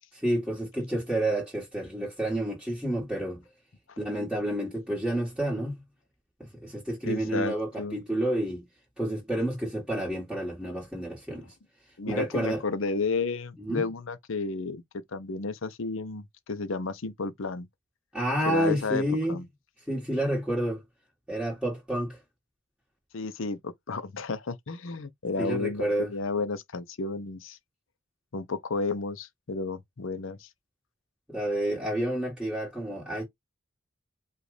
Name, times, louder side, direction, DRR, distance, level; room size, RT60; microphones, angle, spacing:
voice 1, 0.1-3.4 4.0-5.8 6.4-8.7 9.0-11.5 12.1-12.6 13.6-13.8 18.1-19.4 19.9-20.8 21.3-22.2 25.4-26.1 31.3-33.2, right 1 dB, 5° right, 1.8 m, -29 dB
voice 2, 7.0-8.0 12.0-14.8 15.1-17.7 18.4-19.0 19.3-19.4 23.1-23.6 23.9-27.6 28.3-30.5, left 3 dB, 70° left, 0.7 m, -32 dB
5.0 x 2.5 x 3.2 m
head